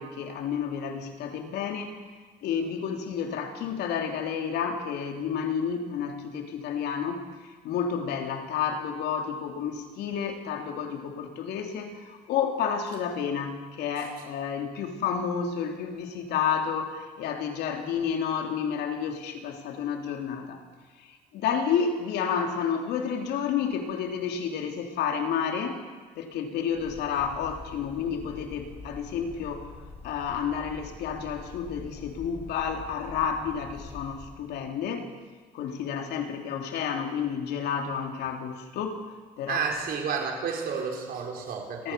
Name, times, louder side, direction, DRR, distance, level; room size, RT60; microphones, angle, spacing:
voice 1, 0.0-2.0 2.4-20.6 21.0-25.8 26.1-29.7 30.0-35.1 35.5-39.0 39.4-39.6 41.8-41.9, left 7 dB, 80° left, 4 dB, 3.0 m, -30 dB
Bird, 26.7-34.3, left 3 dB, 35° left, 6.6 m, -45 dB
voice 2, 39.5-41.9, right 6 dB, 65° right, 1 dB, 4.8 m, -31 dB
29.5 x 14.0 x 6.8 m, 1.4 s
cardioid pair, 110°, 17 cm